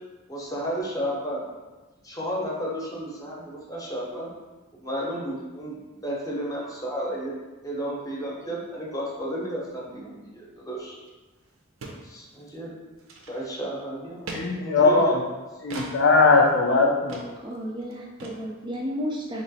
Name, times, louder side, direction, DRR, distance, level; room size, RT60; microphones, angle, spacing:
voice 1, 0.3-1.4 2.0-4.3 4.8-5.8 6.0-7.3 7.6-11.0 12.0-12.7 13.3-15.1, equal, 15° left, -4 dB, 0.8 m, -32 dB
sound 1, 11.1-11.2 11.4-11.5 11.8-12.0 12.4-12.6 13.0-13.6 14.3-14.4 15.7-15.9 16.5-16.6 17.1-17.3 17.5-17.6 17.8-17.9 18.2-18.4, right 3 dB, 75° right, 0.6 m, -38 dB
voice 2, 14.3-15.2 15.6-17.3, left 3 dB, 60° left, 2 dB, 0.5 m, -19 dB
voice 3, 17.4-19.4, equal, 25° right, -1 dB, 0.4 m, -32 dB
3.1 x 3.0 x 4.1 m, 1.2 s
head